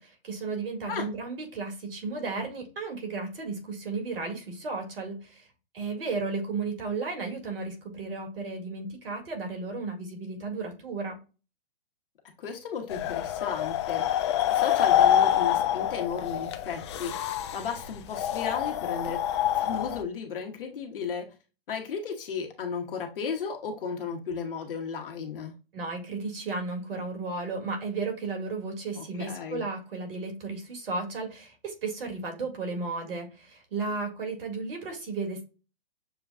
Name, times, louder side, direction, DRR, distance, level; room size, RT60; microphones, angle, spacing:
voice 1, 0.2-5.5 5.7-11.2 25.7-35.4, right 3 dB, 70° right, 2.0 m, -34 dB
voice 2, 12.4-17.2 17.5-19.3 19.5-21.3 21.7-25.5 28.9-29.6, left 6 dB, 65° left, 1.3 m, -34 dB
sound 1, 12.9-20.0, left 11 dB, 30° left, 0.4 m, -26 dB
6.8 x 2.3 x 2.3 m
hypercardioid pair, 130°, 29 cm